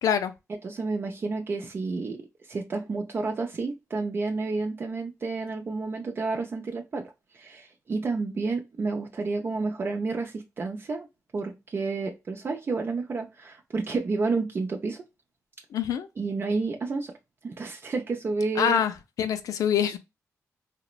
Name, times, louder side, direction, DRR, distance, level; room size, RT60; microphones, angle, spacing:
voice 1, 0.0-0.3 15.7-16.1 18.6-18.9 19.2-20.0, left 8 dB, 80° left, 0.4 m, -24 dB
voice 2, 0.6-2.2 2.5-11.1 11.3-15.0 16.2-17.1 17.4-18.8, right 3 dB, 40° right, 0.4 m, -30 dB
2.9 x 2.0 x 2.4 m
cardioid pair, 90°, 6 cm